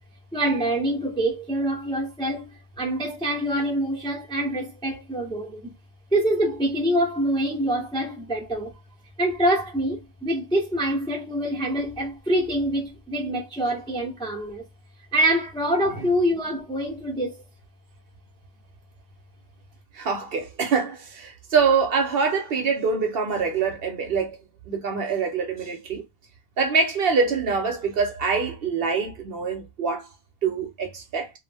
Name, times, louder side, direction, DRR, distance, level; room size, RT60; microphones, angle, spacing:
voice 1, 0.3-5.7 6.1-8.7 9.2-14.6 15.1-17.5, right 1 dB, 5° left, 0.4 m, -25 dB
voice 2, 19.9-24.4 24.7-26.0 26.6-30.1 30.4-31.3, right 5 dB, 60° right, 0.7 m, -24 dB
2.3 x 2.0 x 3.3 m
omnidirectional pair, 1.2 m